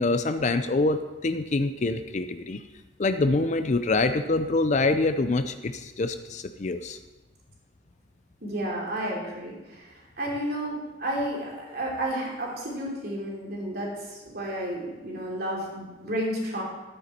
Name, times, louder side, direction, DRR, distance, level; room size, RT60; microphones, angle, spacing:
voice 1, 0.0-2.6 3.0-7.0, left 3 dB, 40° left, 9 dB, 0.5 m, -25 dB
voice 2, 8.4-16.6, right 1 dB, 55° right, -2 dB, 3.1 m, -32 dB
12.5 x 9.3 x 4.3 m, 1.1 s
head